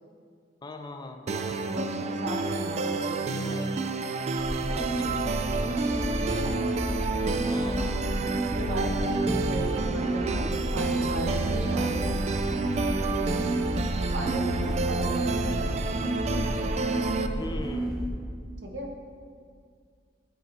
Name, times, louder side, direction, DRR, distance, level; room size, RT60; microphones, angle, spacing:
voice 1, 0.6-1.2 4.7-5.8 7.5-8.0 17.4-18.0, left 2 dB, 25° left, 6 dB, 0.4 m, -40 dB
sound 1, 1.3-17.3, right 3 dB, 40° right, 0.3 m, -30 dB
voice 2, 1.6-3.6 6.2-6.6 8.4-12.2 13.1-13.4 14.1-16.6 18.6-18.9, right 1 dB, 90° right, 1 dB, 1.0 m, -37 dB
sound 2, 4.4-18.1, right 1 dB, 5° right, 0.9 m, -31 dB
9.4 x 4.4 x 3.9 m, 2.1 s
head